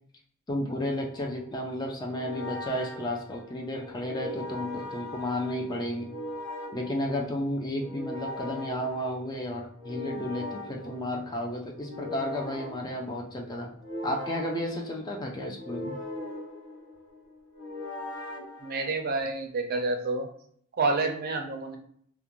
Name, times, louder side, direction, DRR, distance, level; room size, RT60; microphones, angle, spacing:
voice 1, 0.5-6.1 6.7-13.7 14.0-16.0, left 1 dB, 20° left, 1 dB, 0.3 m, -32 dB
sound 1, 1.0-19.3, left 1 dB, 60° left, 1.0 m, -41 dB
voice 2, 18.6-20.3 20.8-21.8, right 3 dB, 45° right, 4 dB, 0.4 m, -28 dB
2.4 x 2.1 x 2.9 m, 0.64 s
head